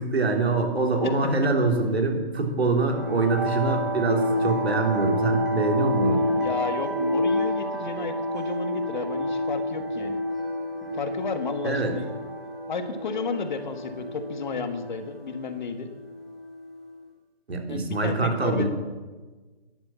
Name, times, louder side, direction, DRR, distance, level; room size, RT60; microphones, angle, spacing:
voice 1, 0.0-6.2 11.6-11.9 17.5-18.7, right 3 dB, 80° right, 3 dB, 3.6 m, -24 dB
sound 1, 2.8-16.9, equal, ahead, 0.6 m, -29 dB
voice 2, 6.3-10.2 10.9-12.1 12.7-15.9 17.7-18.7, left 4 dB, 45° left, 9 dB, 1.4 m, -32 dB
12.5 x 11.0 x 7.4 m, 1.3 s
hypercardioid pair, 165°, 31 cm